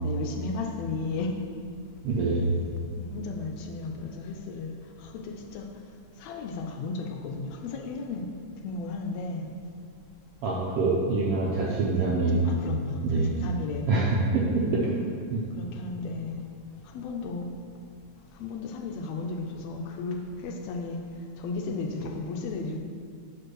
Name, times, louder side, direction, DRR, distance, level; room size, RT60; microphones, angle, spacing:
voice 1, 0.0-1.4 3.0-4.7 5.0-5.7 6.2-8.3 8.6-9.6 12.4-13.9 14.6-15.1 15.6-16.5 16.9-17.5 18.4-21.0 21.4-22.8, left 3 dB, 80° left, 2 dB, 1.6 m, -34 dB
voice 2, 2.0-2.5 10.4-12.4 13.0-13.3 13.9-14.8 15.3-15.4, right 3 dB, 85° right, -4 dB, 1.3 m, -25 dB
5.1 x 4.6 x 6.2 m, 2.3 s
omnidirectional pair, 3.5 m